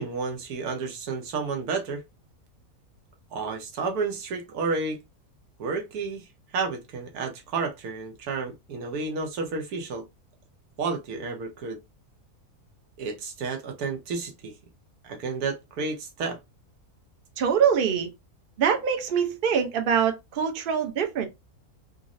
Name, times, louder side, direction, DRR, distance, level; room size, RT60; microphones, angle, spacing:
voice 1, 0.0-2.0 3.3-5.0 5.6-6.2 6.5-10.0 10.8-11.8 13.0-14.5 15.0-16.4, right 4 dB, 85° right, 1.3 m, -31 dB
voice 2, 17.4-18.1 18.6-21.3, right 7 dB, 50° right, 0.7 m, -24 dB
3.9 x 2.0 x 2.5 m
omnidirectional pair, 1.5 m